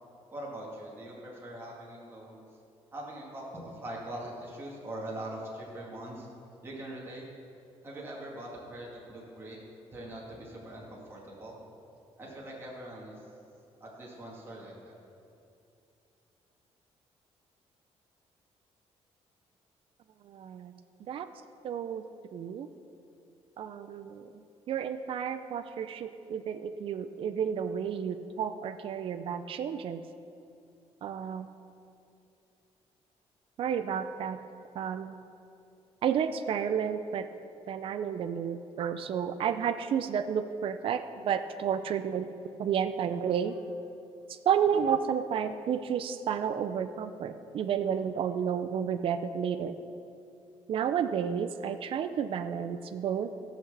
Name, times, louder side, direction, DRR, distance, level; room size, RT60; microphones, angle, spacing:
voice 1, 0.3-2.4 2.9-6.3 6.6-7.2 7.8-9.6 9.9-11.6 12.2-13.2 13.8-15.0, right 1 dB, 20° right, -5 dB, 2.2 m, -42 dB
voice 2, 20.3-20.7 21.1-21.3 21.6-22.0 22.3-22.7 23.6-24.3 24.7-30.0 31.0-31.5 33.6-34.4 34.8-35.1 36.0-37.3 37.7-42.3 42.6-43.5 44.5-49.7 50.7-53.3, right 8 dB, 50° right, 9 dB, 0.5 m, -31 dB
15.0 x 6.0 x 6.7 m, 2.7 s
cardioid pair, 150°, 11 cm